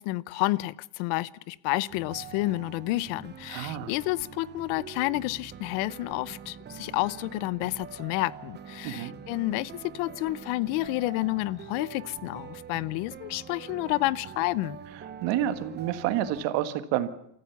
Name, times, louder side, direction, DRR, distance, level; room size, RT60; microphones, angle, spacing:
voice 1, 0.0-14.8, left 19 dB, 90° left, 0.8 m, -30 dB
sound 1, 1.9-16.5, right 8 dB, 25° right, 0.8 m, -44 dB
voice 2, 3.5-3.9 8.8-9.1 14.9-17.1, right 12 dB, 70° right, 1.7 m, -29 dB
28.0 x 14.5 x 7.1 m
cardioid pair, 160°, 45 cm